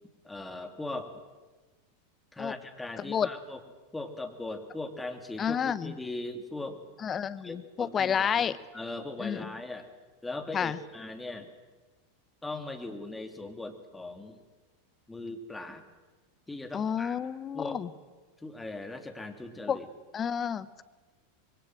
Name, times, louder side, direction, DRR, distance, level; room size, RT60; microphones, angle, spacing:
voice 1, 0.2-1.1 2.3-3.6 3.9-6.8 7.4-8.5 8.7-9.9 10.2-11.5 12.4-14.4 15.1-15.8 16.5-17.2 17.5-17.8 18.4-19.9, left 2 dB, 10° left, 6 dB, 3.1 m, -39 dB
voice 2, 3.0-3.3 5.4-5.9 7.0-8.6 9.2-9.5 10.5-10.8 16.7-17.9 19.7-19.8 20.1-20.8, left 7 dB, 25° left, 15 dB, 1.1 m, -30 dB
26.0 x 22.0 x 7.8 m, 1.3 s
figure-of-eight pair, 90°, 0 cm